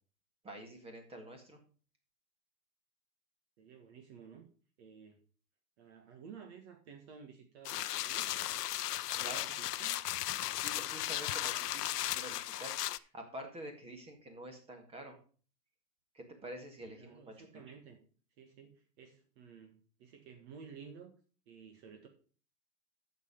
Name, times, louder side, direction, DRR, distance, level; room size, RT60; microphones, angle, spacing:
voice 1, 0.4-1.6 9.2-9.6 10.5-15.2 16.1-17.5, right 1 dB, 10° right, 4 dB, 1.9 m, -48 dB
voice 2, 3.6-4.5 4.8-5.2 5.8-8.3 9.1-10.0 16.9-18.0 18.4-21.1 21.5-22.1, right 6 dB, 45° right, 5 dB, 1.5 m, -53 dB
sound 1, 7.7-13.0, left 14 dB, 80° left, 0.7 m, -36 dB
8.5 x 6.8 x 5.2 m, 0.40 s
hypercardioid pair, 150°, 46 cm